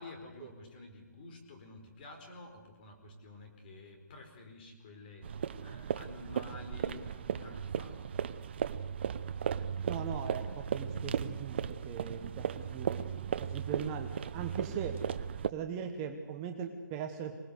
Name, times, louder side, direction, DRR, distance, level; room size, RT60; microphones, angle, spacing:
voice 1, 0.0-8.1 12.4-12.8, left 2 dB, 30° left, 4 dB, 4.4 m, -50 dB
sound 1, 5.2-15.5, right 8 dB, 35° right, 0.8 m, -36 dB
voice 2, 9.9-13.1 13.4-15.0 15.5-17.4, right 7 dB, 15° right, 4 dB, 1.1 m, -39 dB
26.0 x 18.5 x 8.1 m, 1.3 s
hypercardioid pair, 165°, 10 cm